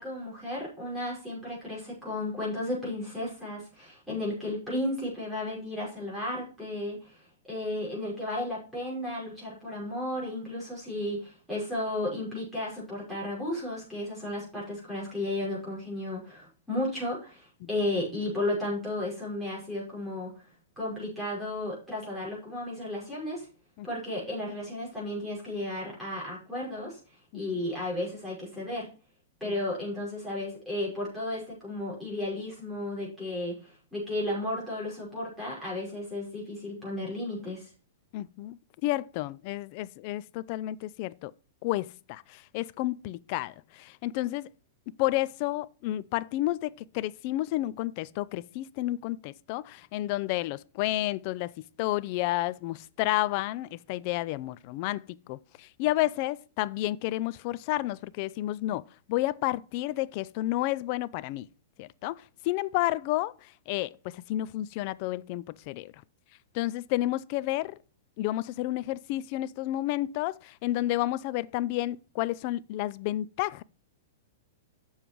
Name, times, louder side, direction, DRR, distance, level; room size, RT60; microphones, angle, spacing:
voice 1, 0.0-20.3 20.8-23.5 23.8-27.0 27.3-28.9 29.4-37.7, left 1 dB, ahead, 5.6 m, -34 dB
voice 2, 38.1-41.3 41.6-44.5 45.0-51.5 51.8-58.8 59.1-61.5 61.8-65.9 66.5-67.8 68.2-73.6, left 16 dB, 40° left, 0.4 m, -31 dB
7.3 x 7.1 x 4.6 m
hypercardioid pair, 160°, 0 cm